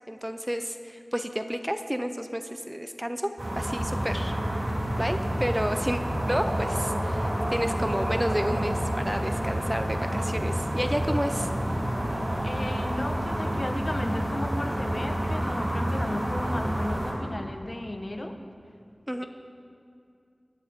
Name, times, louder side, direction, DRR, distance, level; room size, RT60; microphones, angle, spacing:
voice 1, 0.1-4.3 5.0-6.0 6.3-11.5 19.1-19.3, equal, 10° right, 7 dB, 0.7 m, -31 dB
sound 1, 3.4-17.1, equal, 50° right, 3.4 m, -29 dB
voice 2, 12.4-18.4, left 1 dB, 45° left, 5 dB, 1.1 m, -34 dB
23.5 x 11.5 x 3.6 m, 2.5 s
wide cardioid pair, 50°, 0 cm